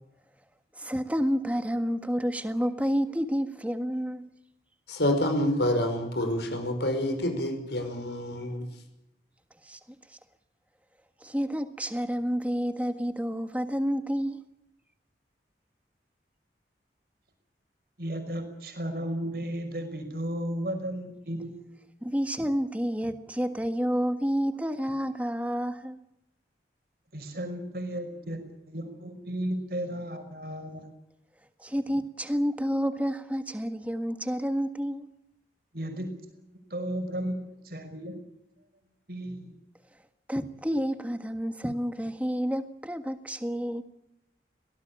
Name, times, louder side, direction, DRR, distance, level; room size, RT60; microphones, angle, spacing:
voice 1, 0.7-4.2 9.6-9.8 10.1-10.2 11.2-14.4 22.0-26.0 31.6-35.1 40.3-43.8, equal, 10° right, 1.6 m, -29 dB
voice 2, 4.9-8.7, left 1 dB, 75° left, 5.5 m, -27 dB
voice 3, 18.0-21.8 27.1-30.8 35.7-36.2 36.7-38.3 39.1-39.5, right 1 dB, 55° right, 5.6 m, -34 dB
23.5 x 18.0 x 8.7 m
head